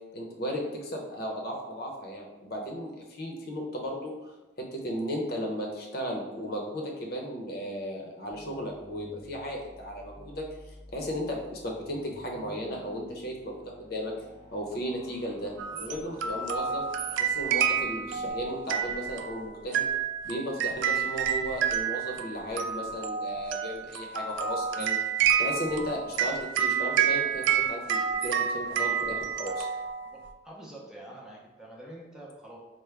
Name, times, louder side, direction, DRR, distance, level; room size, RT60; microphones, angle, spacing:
voice 1, 0.1-4.3 4.7-14.1 14.5-16.8 17.2-19.9 20.2-25.0 25.4-29.7, equal, 55° left, 0 dB, 0.7 m, -35 dB
sound 1, 8.3-18.3, equal, 35° right, 0.7 m, -51 dB
sound 2, 15.6-30.3, right 8 dB, 85° right, 0.3 m, -29 dB
voice 2, 30.0-32.6, right 1 dB, 5° right, -4 dB, 0.5 m, -46 dB
4.6 x 2.1 x 3.2 m, 1.1 s
head